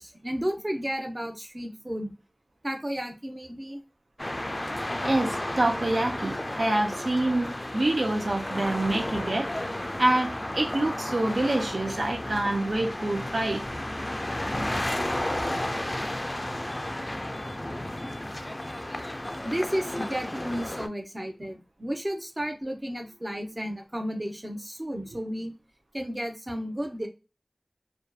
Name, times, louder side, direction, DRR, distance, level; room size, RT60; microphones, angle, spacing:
voice 1, 0.0-2.1 2.6-3.8 19.4-25.5 25.9-27.1, equal, 30° right, 0.7 m, -33 dB
sound 1, 4.2-20.9, left 1 dB, 35° left, 0.3 m, -33 dB
voice 2, 4.8-13.6 18.3-18.6 18.8-19.0, right 1 dB, 90° right, 0.5 m, -27 dB
2.6 x 2.2 x 2.2 m
wide cardioid pair, 50°, 0 cm